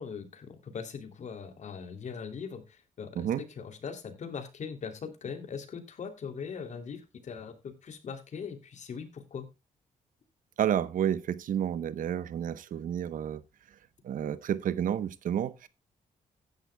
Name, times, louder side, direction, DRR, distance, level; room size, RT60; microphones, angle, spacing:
voice 1, 0.0-9.5, left 6 dB, 55° left, 2.9 m, -40 dB
voice 2, 10.6-13.4 14.0-15.7, right 9 dB, 70° right, 0.9 m, -30 dB
15.5 x 11.0 x 2.2 m
cardioid pair, 95°, 14 cm